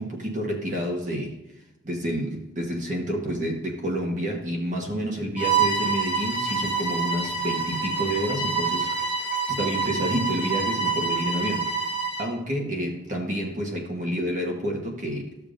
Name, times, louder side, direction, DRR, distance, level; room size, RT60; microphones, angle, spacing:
voice 1, 0.0-1.4 1.8-8.9 9.5-11.9 12.2-15.5, equal, 40° right, 1.2 m, -29 dB
Bowed string instrument, 5.4-12.3, right 5 dB, 5° right, 1.3 m, -27 dB
14.0 x 6.8 x 2.5 m
head